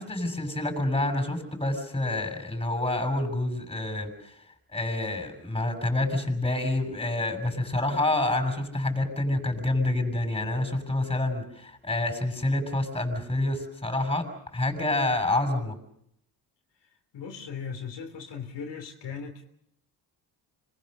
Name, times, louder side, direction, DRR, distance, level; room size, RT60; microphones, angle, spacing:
voice 1, 0.0-4.4 4.7-14.3 14.5-15.8, left 2 dB, 10° left, 7 dB, 7.1 m, -28 dB
voice 2, 17.1-19.4, left 6 dB, 70° left, 3 dB, 3.3 m, -38 dB
26.5 x 21.0 x 6.7 m, 0.75 s
supercardioid pair, 70°, 44 cm